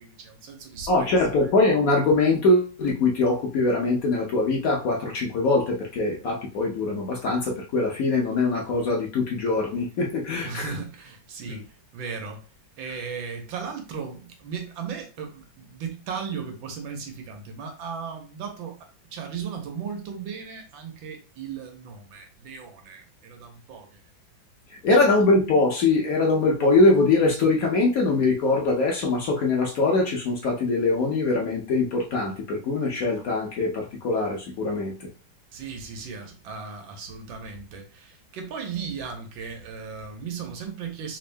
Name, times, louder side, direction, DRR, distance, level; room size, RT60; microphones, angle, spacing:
voice 1, 0.0-1.5 10.4-12.5 12.8-24.0 24.9-25.1 35.5-41.2, right 6 dB, 90° right, 1.6 m, -36 dB
voice 2, 0.9-10.7 24.7-35.1, left 3 dB, 60° left, 1.0 m, -22 dB
3.7 x 2.6 x 3.3 m
omnidirectional pair, 2.0 m